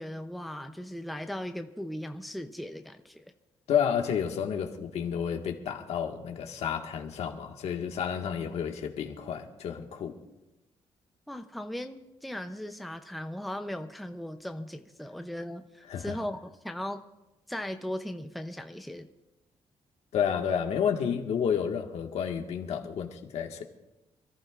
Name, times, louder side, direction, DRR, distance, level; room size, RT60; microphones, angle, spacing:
voice 1, 0.0-3.3 11.3-17.0 17.5-19.1, left 1 dB, ahead, 6 dB, 0.6 m, -38 dB
voice 2, 3.7-10.2 15.9-16.2 20.1-23.6, left 8 dB, 75° left, 3 dB, 1.6 m, -30 dB
27.5 x 14.5 x 2.5 m, 1.0 s
cardioid pair, 165°, 11 cm